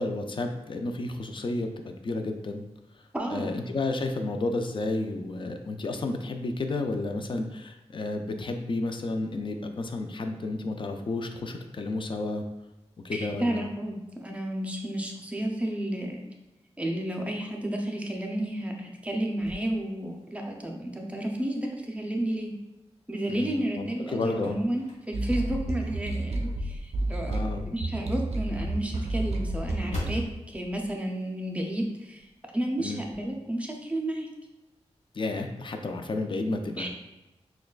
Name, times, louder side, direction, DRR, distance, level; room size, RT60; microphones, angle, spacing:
voice 1, 0.0-2.6 3.3-12.4 13.0-13.7 23.3-24.6 27.3-27.7 32.8-33.0 35.1-36.9, left 2 dB, 45° left, 5 dB, 0.4 m, -31 dB
voice 2, 3.1-3.5 13.1-16.2 16.8-22.5 23.1-27.4 27.7-32.3 32.5-34.3 36.8-36.9, right 1 dB, 10° right, 1 dB, 0.5 m, -31 dB
sound 1, 19.4-20.7 21.2-21.3 22.8-23.3 23.8-26.4 26.9-27.0 27.4-27.5 27.8-27.9 28.1-31.9 32.1-32.4 32.7-33.3, left 1 dB, 80° left, 1.1 m, -41 dB
sound 2, 25.1-30.2, right 2 dB, 70° right, 0.5 m, -31 dB
6.1 x 2.2 x 2.3 m, 0.97 s
wide cardioid pair, 125°, 11 cm